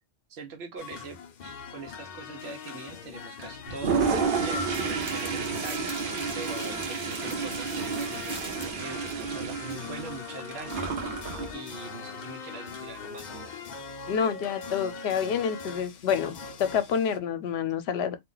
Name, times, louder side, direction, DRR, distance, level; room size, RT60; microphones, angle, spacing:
voice 1, 0.3-4.0 4.4-6.0 6.3-11.2 11.5-13.6, right 4 dB, 90° right, 0.9 m, -42 dB
sound 1, 0.8-17.2, left 6 dB, 55° left, 0.5 m, -42 dB
Toilet flush, 3.7-11.5, right 5 dB, 60° right, 0.8 m, -30 dB
sound 2, 4.4-9.5, right 1 dB, 5° right, 0.7 m, -45 dB
voice 2, 14.1-18.2, left 7 dB, 85° left, 0.8 m, -28 dB
2.3 x 2.2 x 3.8 m
omnidirectional pair, 1.1 m